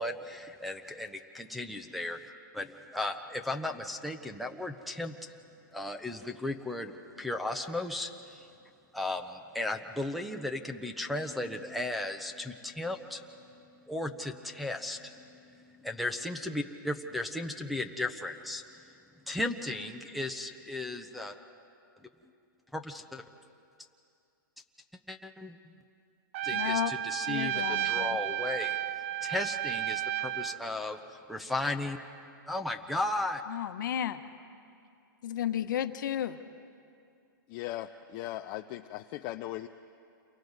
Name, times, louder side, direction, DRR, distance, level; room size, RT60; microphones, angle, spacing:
voice 1, 0.0-2.2 2.5-5.2 5.7-6.9 7.2-8.5 8.9-13.2 13.9-18.6 19.3-21.4 22.7-23.2 25.1-25.6 26.4-32.0 32.5-33.4, left 2 dB, ahead, 2 dB, 0.7 m, -35 dB
Trumpet, 26.3-30.6, right 13 dB, 40° right, 0.4 m, -32 dB
voice 2, 26.5-26.9 27.3-28.2 33.5-34.2 35.2-36.4, left 10 dB, 65° left, 9 dB, 1.1 m, -32 dB
voice 3, 37.5-39.7, left 14 dB, 30° left, 6 dB, 0.4 m, -38 dB
29.0 x 23.5 x 4.0 m, 2.5 s
hypercardioid pair, 155°, 11 cm